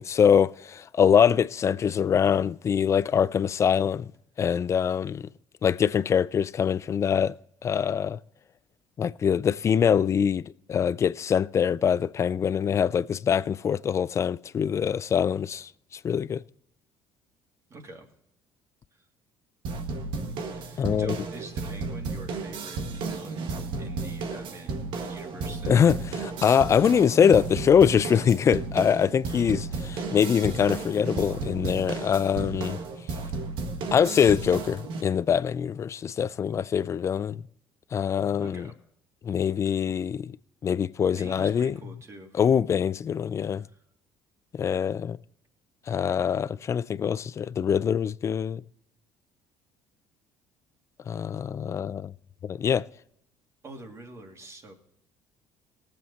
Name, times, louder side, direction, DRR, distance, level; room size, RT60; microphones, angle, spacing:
voice 1, 0.0-4.1 4.4-5.3 5.6-7.3 7.6-8.2 9.0-10.4 10.7-15.7 16.0-16.4 20.8-21.2 25.7-32.8 33.9-37.4 37.9-38.7 39.2-40.2 40.6-41.7 42.3-43.6 44.6-45.2 45.9-48.6 51.1-52.1 52.4-52.9, left 7 dB, 35° left, 0.4 m, -23 dB
voice 2, 17.7-18.1 18.9-19.1 20.4-25.8 31.3-31.5 38.4-38.7 39.6-39.8 41.2-42.4 43.6-43.8 53.6-54.7, right 2 dB, 35° right, 2.4 m, -45 dB
sound 1, 19.6-35.0, right 3 dB, 75° right, 1.6 m, -33 dB
18.5 x 7.7 x 4.1 m
cardioid pair, 100°, 8 cm